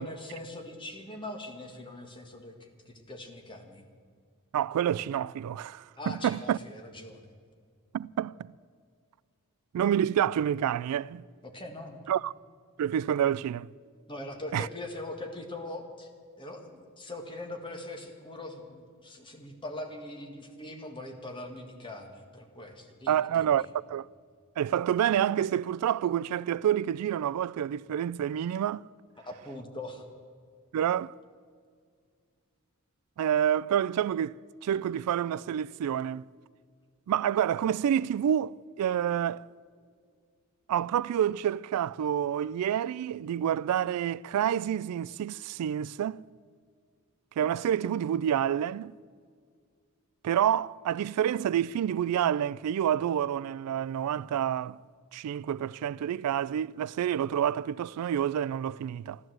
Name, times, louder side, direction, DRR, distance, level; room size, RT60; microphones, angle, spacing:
voice 1, 0.0-3.8 6.0-7.3 11.4-12.0 14.1-16.1 16.4-23.7 29.2-30.0, left 1 dB, 20° left, 1.7 m, -42 dB
voice 2, 4.5-6.6 7.9-8.5 9.7-11.3 12.1-12.3 12.8-13.7 14.5-14.7 23.1-24.1 24.6-28.8 30.7-31.1 33.2-34.4 34.6-36.3 37.1-39.5 40.7-46.2 47.4-48.9 50.2-54.8 55.1-59.2, right 9 dB, 85° right, 0.3 m, -28 dB
14.0 x 12.0 x 7.7 m
head